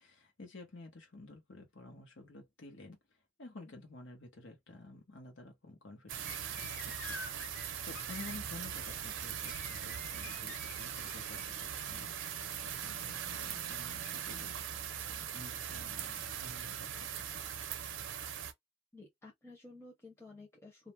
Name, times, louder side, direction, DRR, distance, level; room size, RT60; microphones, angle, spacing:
voice 1, 0.0-14.6 15.1-17.1, left 2 dB, 80° left, 1.0 m, -52 dB
sound 1, 6.1-18.5, right 9 dB, 85° right, 0.5 m, -40 dB
sound 2, 6.2-11.9, left 3 dB, 55° left, 1.1 m, -50 dB
voice 2, 18.9-20.9, left 2 dB, 15° left, 0.7 m, -53 dB
2.4 x 2.1 x 3.0 m
head